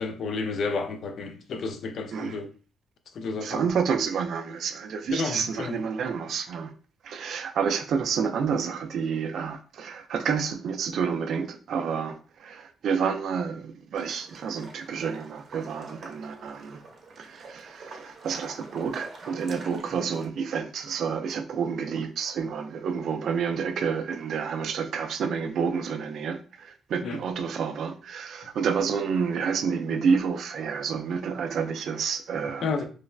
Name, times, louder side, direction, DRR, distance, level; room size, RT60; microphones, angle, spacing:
voice 1, 0.0-2.5 3.1-3.6 5.1-5.8 27.0-27.2 32.6-32.9, left 4 dB, 65° left, 0.4 m, -31 dB
voice 2, 3.4-6.7 7.0-16.8 17.2-32.6, right 6 dB, 65° right, 0.3 m, -29 dB
sound 1, 13.9-20.3, right 3 dB, 50° right, 0.7 m, -47 dB
3.1 x 2.0 x 2.3 m
cardioid pair, 90°, 0 cm